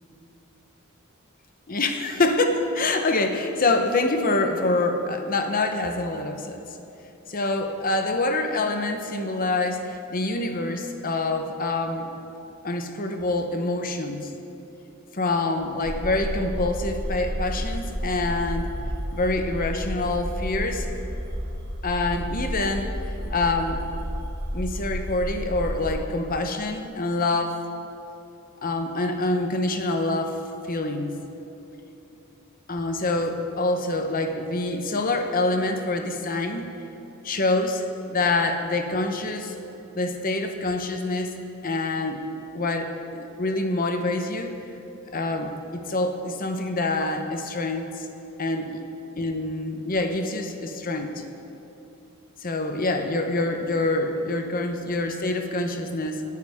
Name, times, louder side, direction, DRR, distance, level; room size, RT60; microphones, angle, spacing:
voice 1, 1.7-6.6 7.3-12.1 12.6-14.3 15.1-18.7 19.1-20.9 21.8-22.9 23.3-23.8 24.5-27.6 28.6-30.4 30.7-31.1 32.7-36.7 37.2-39.5 39.9-41.3 41.6-42.2 42.5-44.5 45.1-48.1 48.4-48.8 49.2-51.2 52.4-56.2, left 2 dB, 40° left, 5 dB, 0.9 m, -26 dB
sound 1, 15.8-25.9, equal, 85° right, 2.7 m, -31 dB
20.5 x 9.4 x 3.6 m, 2.9 s
head